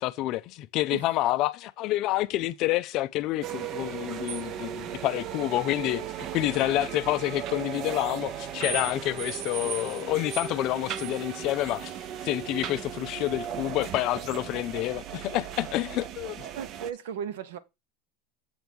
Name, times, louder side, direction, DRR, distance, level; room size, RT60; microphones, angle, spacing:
voice 1, 0.0-12.0 12.2-16.5, left 16 dB, 40° left, 0.4 m, -28 dB
sound 1, 3.4-16.9, right 9 dB, 35° right, 0.5 m, -36 dB
voice 2, 16.5-17.6, right 8 dB, 80° right, 1.0 m, -36 dB
7.9 x 3.5 x 6.1 m
supercardioid pair, 155°, 0 cm